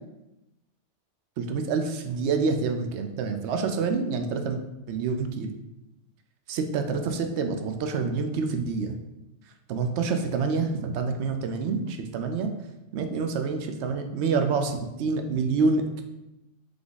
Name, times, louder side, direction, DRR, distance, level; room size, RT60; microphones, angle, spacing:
voice 1, 1.4-4.6 4.9-5.5 6.5-8.9 9.7-12.5 12.9-16.0, right 4 dB, 75° right, 6 dB, 0.8 m, -27 dB
3.5 x 3.4 x 3.9 m, 0.93 s
omnidirectional pair, 1.2 m